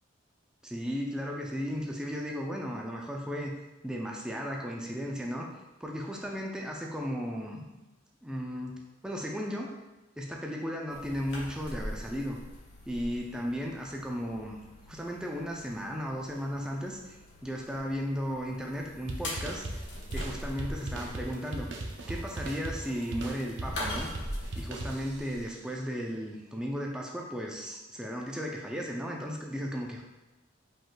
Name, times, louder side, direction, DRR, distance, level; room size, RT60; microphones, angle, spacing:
voice 1, 0.6-3.6 3.8-5.5 5.8-7.7 8.2-8.8 9.0-9.7 10.2-12.4 12.9-14.6 14.9-19.7 20.1-21.7 22.1-24.1 24.6-30.0, equal, 5° right, -1 dB, 0.4 m, -35 dB
sound 1, 10.9-25.5, left 1 dB, 65° left, 1.0 m, -43 dB
sound 2, 19.1-25.5, right 1 dB, 65° right, 0.5 m, -39 dB
5.1 x 3.7 x 2.2 m, 1.1 s
head